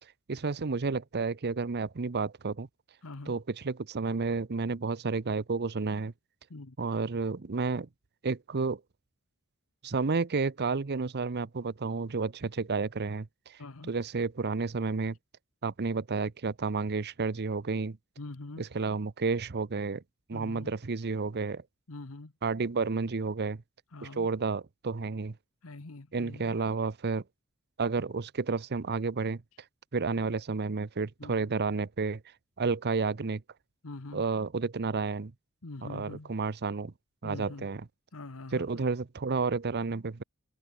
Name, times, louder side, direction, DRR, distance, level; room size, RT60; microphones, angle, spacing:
voice 1, 0.3-2.7 3.3-6.1 6.8-7.9 8.2-8.8 9.8-13.6 13.9-15.2 15.6-18.0 18.6-20.0 20.3-21.6 22.4-23.6 24.0-25.4 26.1-27.2 27.8-29.4 29.9-32.2 32.6-33.4 34.1-35.3 35.9-36.9 37.2-37.8 38.5-40.2, right 4 dB, 50° right, 0.7 m, -31 dB
voice 2, 3.0-3.4 6.5-6.8 13.6-13.9 18.2-18.6 20.3-20.7 21.9-22.3 23.9-24.3 25.6-26.5 31.2-31.5 33.8-34.2 35.6-36.3 37.2-37.7 38.1-38.9, left 2 dB, 70° left, 1.3 m, -44 dB
head